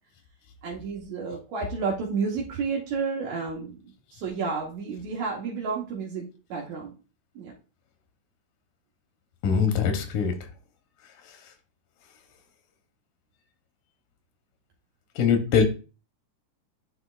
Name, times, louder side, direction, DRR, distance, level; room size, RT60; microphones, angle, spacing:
voice 1, 0.6-6.2 6.5-6.9 7.4-7.5, right 5 dB, 70° right, 2.3 m, -31 dB
voice 2, 9.4-10.4 11.3-11.4 15.2-15.6, left 6 dB, 85° left, 2.4 m, -22 dB
10.0 x 4.3 x 2.4 m
omnidirectional pair, 3.5 m